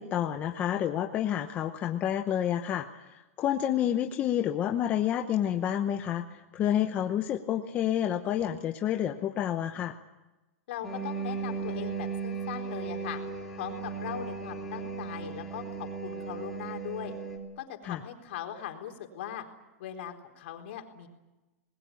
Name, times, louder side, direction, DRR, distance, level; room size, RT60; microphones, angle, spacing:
voice 1, 0.0-10.0 17.8-18.0, left 10 dB, 20° left, 5 dB, 0.9 m, -29 dB
voice 2, 10.7-13.2 13.6-17.1 17.6-19.4 19.8-21.1, left 10 dB, 55° left, 4 dB, 4.0 m, -40 dB
sound 1, 10.8-17.4, right 5 dB, 5° left, 3.3 m, -36 dB
27.0 x 20.5 x 8.5 m, 1.1 s
supercardioid pair, 170°, 7 cm